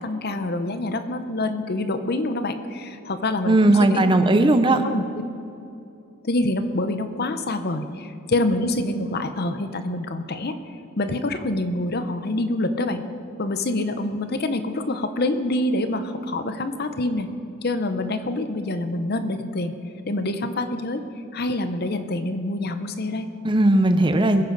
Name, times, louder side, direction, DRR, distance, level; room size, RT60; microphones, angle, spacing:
voice 1, 0.0-4.5 4.8-5.0 6.2-10.5 11.0-13.0 13.4-17.3 17.6-19.7 20.1-21.0 21.3-23.3, left 2 dB, 45° left, 9 dB, 0.8 m, -26 dB
voice 2, 3.5-4.8 23.4-24.4, right 2 dB, 20° right, 8 dB, 0.6 m, -17 dB
21.5 x 9.8 x 4.0 m, 2.6 s
head